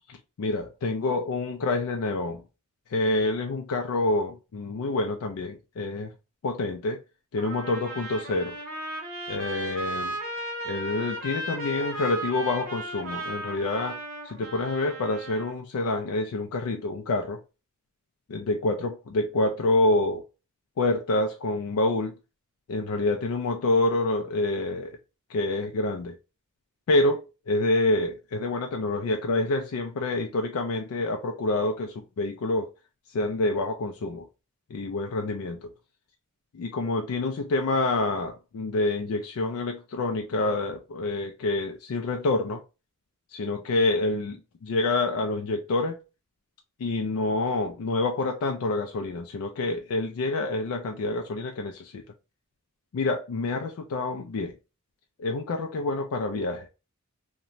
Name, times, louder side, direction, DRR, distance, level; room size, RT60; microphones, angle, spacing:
voice 1, 0.1-2.4 2.9-6.1 6.4-7.0 7.3-8.6 9.3-10.2 10.7-14.0 14.2-17.4 18.3-20.2 20.8-22.2 22.7-25.0 25.3-26.2 26.9-32.7 33.1-34.3 34.7-35.7 36.5-42.6 43.3-46.0 46.8-52.0 52.9-54.5 55.2-56.7, left 2 dB, 75° left, 0.4 m, -27 dB
Trumpet, 7.4-15.5, right 1 dB, 40° right, 1.0 m, -35 dB
2.9 x 2.2 x 2.5 m
head